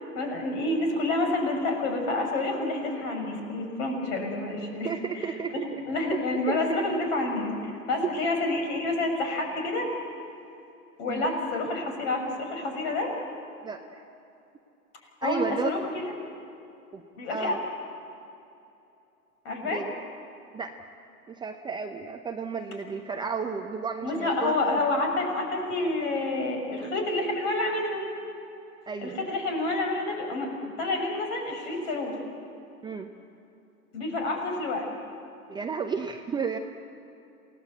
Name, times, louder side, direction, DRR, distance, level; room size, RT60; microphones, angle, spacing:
voice 1, 0.1-4.9 5.9-9.9 11.0-13.1 15.2-16.1 17.1-17.5 19.4-19.8 24.0-28.0 29.0-32.2 33.9-34.9, left 2 dB, 45° left, 3 dB, 6.6 m, -28 dB
voice 2, 4.8-5.9 6.1-6.8 11.1-11.2 13.6-14.0 15.2-15.7 16.9-17.0 17.3-17.6 19.6-20.0 20.5-20.9 21.3-24.8 28.9-29.2 32.8-33.1 35.5-36.6, right 6 dB, 10° right, 4 dB, 0.7 m, -33 dB
28.0 x 18.0 x 8.2 m, 2.7 s
hypercardioid pair, 115°, 46 cm